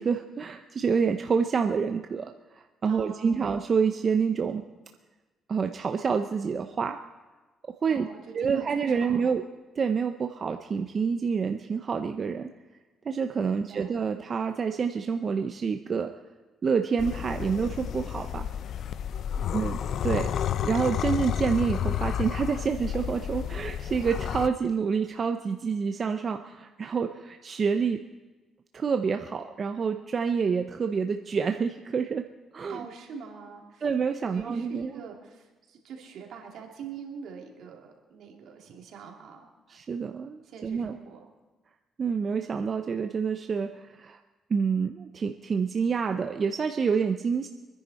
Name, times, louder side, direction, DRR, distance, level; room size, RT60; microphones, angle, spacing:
voice 1, 0.0-4.6 5.5-7.0 7.8-8.1 8.3-9.4 9.8-12.5 13.0-16.1 16.6-18.5 19.5-20.3 20.6-28.0 28.7-32.3 32.5-32.8 33.8-34.9 39.7-41.0 42.0-44.2 44.5-47.5, right 6 dB, 45° right, 6 dB, 0.6 m, -28 dB
voice 2, 2.9-3.5 7.9-9.3 13.5-13.9 19.4-19.6 32.7-33.9 34.3-39.8 40.4-41.2, right 6 dB, 75° right, 1 dB, 2.6 m, -44 dB
sound 1, 17.0-24.5, left 9 dB, 70° left, 0.5 m, -31 dB
25.5 x 10.5 x 4.2 m, 1.2 s
cardioid pair, 90°, 0 cm